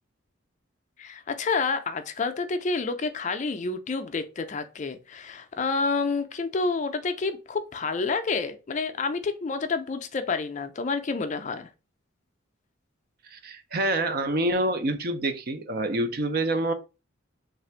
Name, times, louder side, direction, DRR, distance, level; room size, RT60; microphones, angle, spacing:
voice 1, 1.0-11.7, left 4 dB, 35° left, 0.4 m, -29 dB
voice 2, 13.3-16.7, right 1 dB, 50° right, 0.5 m, -27 dB
3.3 x 2.4 x 4.3 m
head